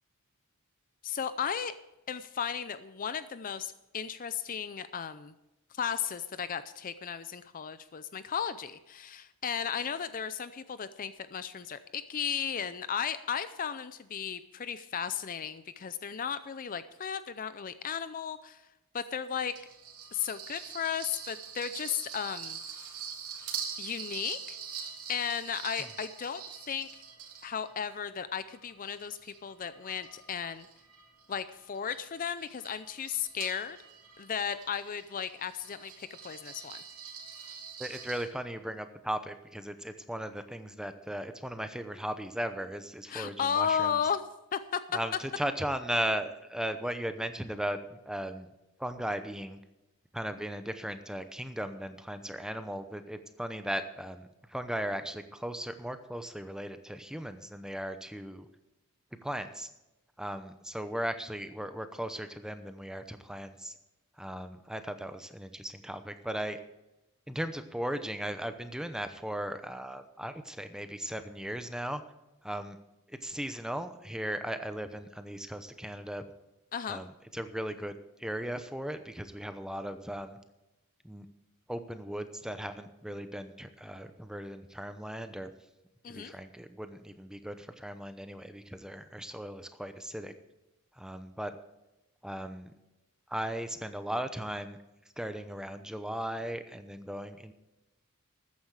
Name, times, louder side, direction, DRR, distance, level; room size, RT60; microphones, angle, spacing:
voice 1, 1.0-1.7 2.1-5.3 5.7-18.6 18.9-19.5 20.1-22.6 23.8-24.6 25.1-26.9 27.4-30.7 31.3-33.8 34.2-36.8 43.1-44.2 44.5-44.8 76.7-77.0 86.0-86.3, left 7 dB, 40° left, 13 dB, 0.5 m, -35 dB
sound 1, 19.4-28.0 28.5-38.3, right 7 dB, 85° right, 2.3 m, -44 dB
voice 2, 37.8-44.0 44.9-48.5 48.8-49.6 50.1-58.5 59.2-59.7 60.2-63.7 64.2-66.6 67.3-72.0 72.4-72.8 73.1-76.2 76.9-80.4 81.0-81.3 81.7-85.5 86.1-90.3 91.0-91.5 92.2-92.7 93.3-94.8 95.2-97.5, right 1 dB, 5° right, 9 dB, 0.8 m, -37 dB
13.5 x 9.5 x 4.8 m, 0.98 s
head